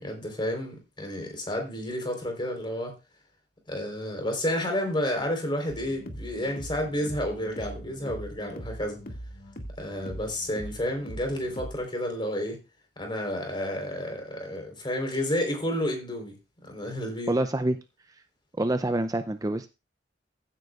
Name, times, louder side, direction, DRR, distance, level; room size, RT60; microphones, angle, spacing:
voice 1, 0.0-2.9 3.7-9.0 9.8-12.6 13.0-16.4 16.7-17.3, left 1 dB, 25° left, 3 dB, 3.9 m, -31 dB
sound 1, 5.7-11.8, equal, 55° left, 2.0 m, -41 dB
voice 2, 17.3-17.8 18.6-19.7, right 1 dB, 20° right, 10 dB, 0.5 m, -26 dB
15.5 x 9.2 x 2.4 m, 0.27 s
head